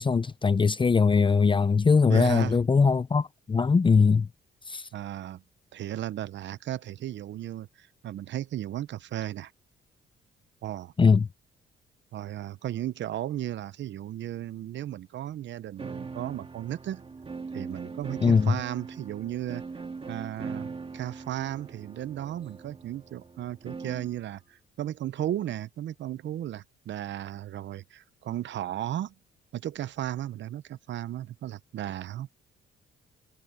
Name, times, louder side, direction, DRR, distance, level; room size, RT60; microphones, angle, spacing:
voice 1, 0.0-4.3 4.7-4.9 11.0-11.3 18.2-18.5, left 5 dB, 25° left, 0.6 m, -21 dB
voice 2, 2.1-2.6 4.9-5.4 5.7-9.5 10.6-10.9 12.1-17.0 17.5-19.6 20.1-29.1 29.5-32.3, right 12 dB, 65° right, 0.8 m, -35 dB
sound 1, 15.8-24.2, right 4 dB, 30° right, 1.9 m, -41 dB
cardioid pair, 90°, 20 cm